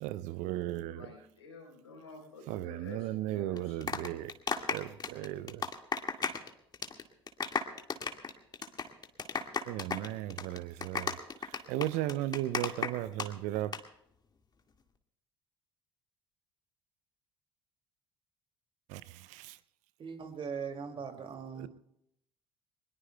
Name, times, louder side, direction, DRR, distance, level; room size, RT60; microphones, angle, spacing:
voice 1, 0.0-1.1 2.5-4.3 4.7-5.7 9.7-13.7 18.9-19.6 21.0-21.2 21.5-21.7, right 14 dB, 60° right, 0.7 m, -36 dB
voice 2, 0.9-3.8 10.3-10.4, left 3 dB, 85° left, 4.3 m, -50 dB
sound 1, 3.6-6.5 6.7-7.0 7.3-13.3 13.6-13.8, left 5 dB, 30° left, 2.0 m, -34 dB
voice 3, 20.0-21.7, right 6 dB, 40° right, 2.6 m, -40 dB
22.5 x 21.0 x 2.3 m
figure-of-eight pair, 60°, 14 cm